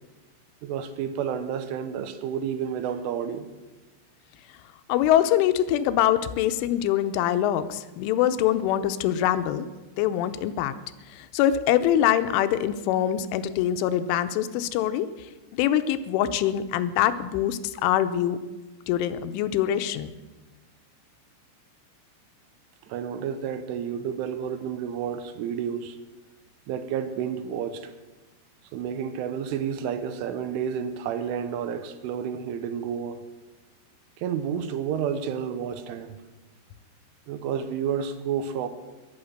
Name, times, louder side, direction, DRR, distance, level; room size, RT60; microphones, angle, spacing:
voice 1, 0.6-3.5 22.9-26.0 26.7-27.9 28.7-33.2 34.2-36.2 37.3-38.7, right 8 dB, 85° right, 3.4 m, -30 dB
voice 2, 4.9-9.7 10.0-10.7 11.1-15.1 15.6-18.4 18.9-20.1, left 11 dB, 85° left, 3.2 m, -24 dB
22.5 x 8.7 x 6.5 m
omnidirectional pair, 5.6 m